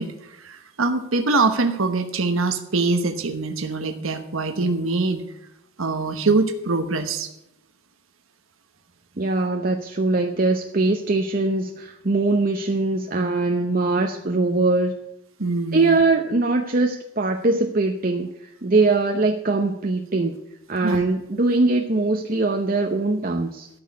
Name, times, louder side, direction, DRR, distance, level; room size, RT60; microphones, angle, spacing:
voice 1, 0.0-5.2 5.8-7.3 15.4-16.0 20.8-21.0, right 3 dB, 85° right, 7 dB, 1.2 m, -23 dB
voice 2, 9.2-14.9 15.7-20.4 20.7-23.7, right 3 dB, 45° right, 4 dB, 0.8 m, -22 dB
13.5 x 6.3 x 9.5 m, 0.85 s
head